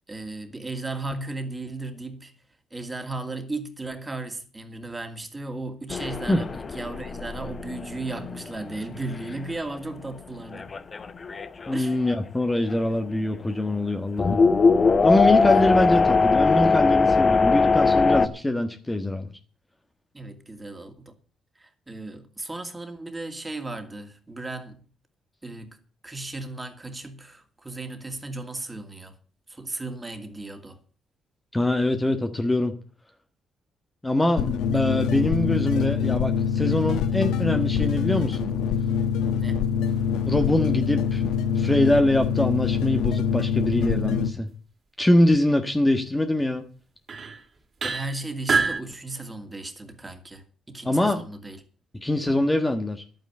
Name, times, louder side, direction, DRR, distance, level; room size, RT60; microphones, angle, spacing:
voice 1, 0.0-2.3 2.7-10.7 11.7-12.0 20.1-21.1 21.6-24.8 25.4-25.8 26.0-29.1 29.5-30.8 34.8-34.9 39.3-39.7 47.8-51.6, right 2 dB, 20° right, 2.4 m, -35 dB
sound 1, 5.9-9.6 10.0-10.1 10.5-12.1 12.7-12.8 14.2-18.3, left 4 dB, 35° left, 1.0 m, -21 dB
voice 2, 11.7-14.4 15.0-19.3 31.5-32.7 34.0-38.5 40.3-41.2 41.5-44.5 45.0-46.6 50.8-51.2 52.0-53.0, left 1 dB, 15° left, 1.4 m, -23 dB
sound 2, 34.4-44.3, left 7 dB, 85° left, 1.0 m, -24 dB
sound 3, 39.9-43.3 46.4-46.5 47.1-47.4 47.8-48.8, right 4 dB, 45° right, 2.6 m, -31 dB
11.5 x 9.2 x 7.8 m
cardioid pair, 90°, 0 cm